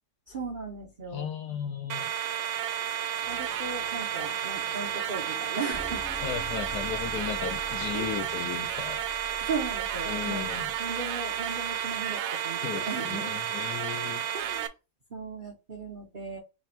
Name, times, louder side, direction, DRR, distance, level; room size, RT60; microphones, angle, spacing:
voice 1, 0.3-1.7 3.3-6.0 7.9-8.1 9.4-10.5 10.8-13.4 14.3-14.7 15.1-16.4, right 4 dB, 45° right, 0.6 m, -37 dB
voice 2, 1.1-2.1 6.2-9.0 10.1-10.7 12.6-14.2, left 8 dB, 70° left, 1.0 m, -35 dB
sound 1, 1.9-14.7, right 9 dB, 75° right, 1.2 m, -32 dB
sound 2, 3.2-8.5, left 5 dB, 85° left, 1.5 m, -49 dB
sound 3, 5.7-10.8, right 1 dB, 20° left, 0.4 m, -45 dB
3.4 x 3.3 x 4.3 m
omnidirectional pair, 2.0 m